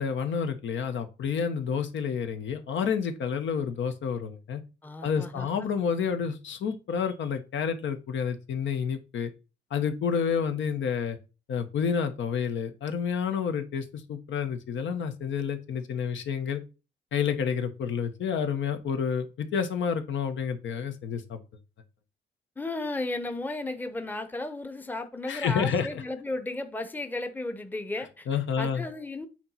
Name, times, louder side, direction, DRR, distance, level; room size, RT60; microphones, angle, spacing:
voice 1, 0.0-4.6 5.0-9.3 9.7-11.2 11.5-16.6 17.1-21.4 25.3-26.0 28.3-28.8, left 6 dB, 75° left, 1.1 m, -29 dB
voice 2, 4.8-5.7 22.6-28.3 28.6-29.3, left 2 dB, 10° left, 0.7 m, -34 dB
8.6 x 3.0 x 5.6 m
cardioid pair, 135°, 19 cm